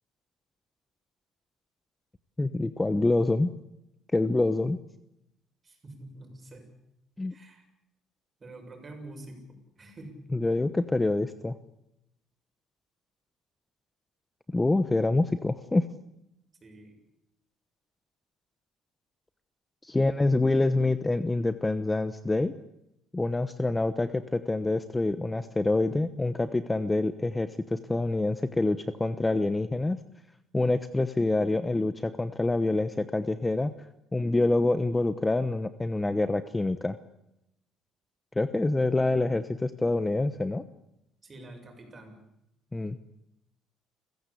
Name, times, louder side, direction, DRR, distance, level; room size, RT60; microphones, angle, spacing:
voice 1, 2.4-3.5 4.1-4.8 7.2-7.3 10.3-11.6 14.5-15.9 19.8-22.5 23.1-30.0 30.5-33.7 34.1-37.0 38.4-40.6 42.7-43.0, left 2 dB, 15° left, 12 dB, 1.1 m, -26 dB
voice 2, 5.6-6.7 7.3-7.6 8.4-10.1 16.6-17.0 41.2-42.2, right 2 dB, 30° right, 4 dB, 7.0 m, -47 dB
29.5 x 15.5 x 8.4 m, 0.83 s
cardioid pair, 110°, 0 cm